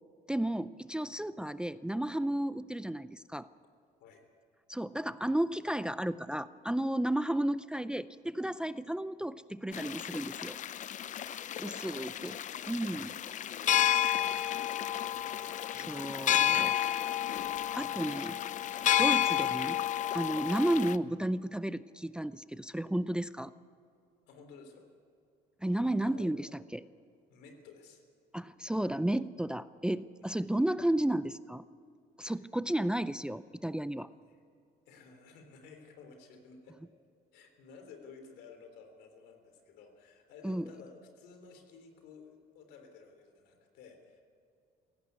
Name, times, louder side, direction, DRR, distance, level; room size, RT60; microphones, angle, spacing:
voice 1, 0.3-3.5 4.7-10.6 11.6-12.3 12.7-13.2 15.7-16.7 17.3-17.4 17.7-18.4 19.0-19.8 20.1-23.5 25.6-26.8 28.3-31.6 32.2-34.1 40.4-40.7, right 1 dB, 5° right, 15 dB, 0.4 m, -33 dB
sound 1, 9.7-21.0, left 11 dB, 45° left, 0.6 m, -31 dB
voice 2, 11.5-12.2 14.1-15.4 18.8-19.0 24.3-24.9 26.0-26.3 27.3-28.0 32.2-32.4 32.8-33.0 33.8-34.4 34.9-36.8 37.3-44.2, left 5 dB, 85° left, 6 dB, 3.5 m, -54 dB
17.0 x 16.5 x 9.5 m, 2.4 s
cardioid pair, 110°, 17 cm